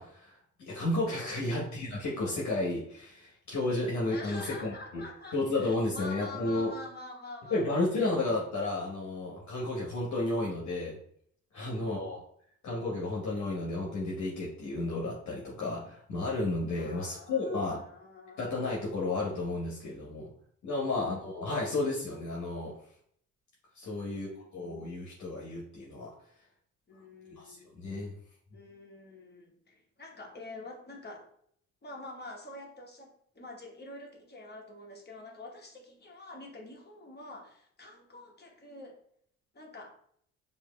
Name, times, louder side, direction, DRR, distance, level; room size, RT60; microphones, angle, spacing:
voice 1, 0.0-5.0 5.3-6.7 7.5-11.0 11.5-12.2 12.6-17.8 18.4-20.3 20.6-22.8 23.7-26.1 27.3-28.1, left 2 dB, 65° left, -4 dB, 1.0 m, -32 dB
voice 2, 1.3-1.6 4.1-8.1 11.5-11.9 16.7-18.4 20.7-21.1 23.9-24.5 26.9-27.7 28.5-31.3 31.8-39.0 39.5-40.0, left 2 dB, 30° left, 0 dB, 1.1 m, -47 dB
4.7 x 2.7 x 2.2 m, 0.66 s
supercardioid pair, 70°, 32 cm